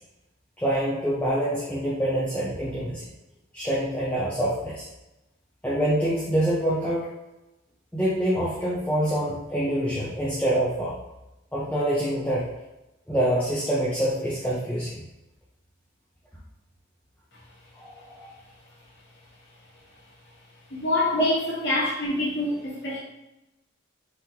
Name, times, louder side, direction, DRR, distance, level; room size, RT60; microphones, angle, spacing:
voice 1, 0.6-3.0 3.5-4.9 5.6-7.1 7.9-10.9 11.5-12.4 13.1-15.0 17.7-18.3 21.1-21.3, right 1 dB, 5° left, -9 dB, 0.5 m, -26 dB
voice 2, 20.7-21.4 21.6-23.0, left 2 dB, 55° left, -7 dB, 1.2 m, -26 dB
3.6 x 3.0 x 2.8 m, 0.94 s
head